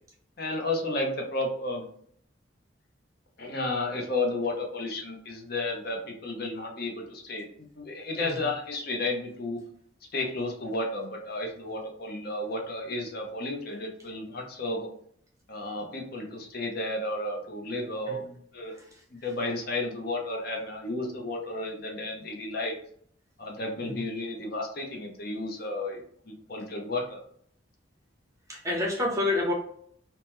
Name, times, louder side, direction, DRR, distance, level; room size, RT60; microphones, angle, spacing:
voice 1, 0.4-1.8 3.4-9.6 10.1-14.9 15.5-18.2 18.5-18.8 19.1-22.7 23.4-27.2, left 2 dB, 50° left, 1 dB, 0.6 m, -32 dB
voice 2, 18.7-19.0 23.8-24.0 28.5-29.5, left 2 dB, 15° right, -1 dB, 0.6 m, -29 dB
2.9 x 2.1 x 3.3 m, 0.63 s
head